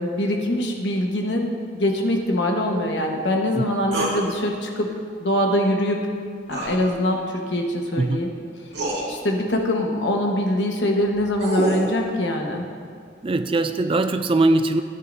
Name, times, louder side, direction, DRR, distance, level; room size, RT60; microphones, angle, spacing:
voice 1, 0.0-4.9 5.2-6.1 6.5-7.2 7.5-8.3 9.1-12.6, left 1 dB, 70° left, 1 dB, 1.3 m, -23 dB
sound 1, 3.9-4.2 6.5-6.8 8.1-8.2 8.7-9.0 11.0-11.9, right 1 dB, 70° right, 2.1 m, -26 dB
voice 2, 13.2-14.8, right 2 dB, 30° right, 9 dB, 0.4 m, -21 dB
13.5 x 10.5 x 2.7 m, 2.2 s
head